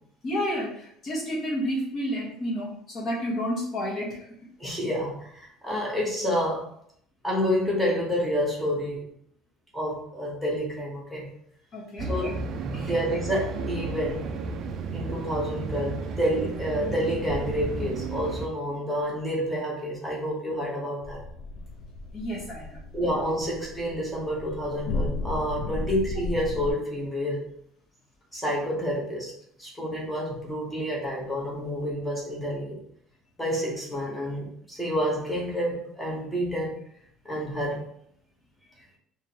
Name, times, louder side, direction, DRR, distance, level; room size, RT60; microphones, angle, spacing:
voice 1, 0.2-4.3 11.7-12.1 12.7-12.9 22.1-22.8 25.7-25.9, equal, 30° left, -3 dB, 1.3 m, -30 dB
voice 2, 4.6-6.7 7.2-9.1 9.7-11.3 12.0-12.3 12.8-14.3 14.9-21.2 22.9-27.4 28.3-29.3 29.6-32.8 33.4-36.8 37.2-37.9, equal, ahead, -4 dB, 1.0 m, -29 dB
sound 1, 12.0-18.5, right 3 dB, 40° right, 0.4 m, -33 dB
sound 2, 21.0-26.7, left 3 dB, 60° left, 0.5 m, -35 dB
4.9 x 2.6 x 2.9 m, 0.67 s
cardioid pair, 165°, 0 cm